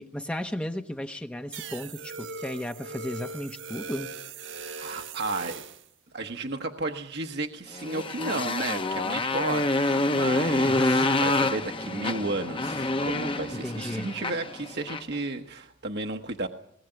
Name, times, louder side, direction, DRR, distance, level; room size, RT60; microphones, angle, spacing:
voice 1, 0.0-4.1 10.7-11.1 13.6-14.1, left 1 dB, 5° left, 5 dB, 0.9 m, -34 dB
sound 1, 1.5-5.9, right 4 dB, 80° right, 1.4 m, -39 dB
voice 2, 4.5-5.6 6.1-16.5, right 2 dB, 60° right, 5 dB, 1.3 m, -33 dB
Motorcycle, 7.7-15.1, left 2 dB, 30° left, 1.0 m, -27 dB
21.0 x 19.5 x 9.1 m, 0.71 s
head